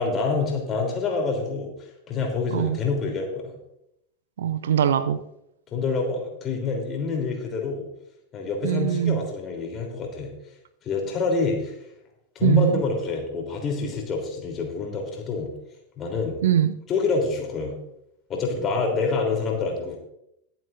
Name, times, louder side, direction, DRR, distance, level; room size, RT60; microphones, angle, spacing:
voice 1, 0.0-3.5 5.7-7.8 8.3-10.3 10.8-11.8 12.3-15.5 16.0-16.4 16.9-17.8 18.3-20.0, left 4 dB, 30° left, 3.4 m, -27 dB
voice 2, 4.4-5.2 8.6-9.2 12.4-12.8 16.4-16.7, right 10 dB, 60° right, 0.6 m, -22 dB
22.0 x 7.8 x 2.6 m
figure-of-eight pair, 90°, 0 cm